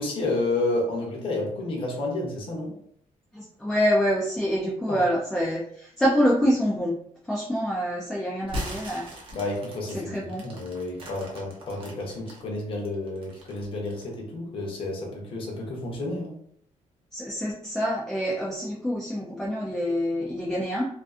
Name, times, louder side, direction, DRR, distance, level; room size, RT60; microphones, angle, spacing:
voice 1, 0.0-2.7 4.9-5.0 9.3-16.3, left 2 dB, 40° left, -1 dB, 0.7 m, -30 dB
voice 2, 3.3-6.9 7.3-9.1 9.9-10.5 17.1-20.9, equal, 5° left, -4 dB, 0.3 m, -26 dB
sound 1, 8.4-12.4 12.8-14.1, equal, 40° right, 0.7 m, -38 dB
2.4 x 2.4 x 2.4 m, 0.66 s
cardioid pair, 170°, 13 cm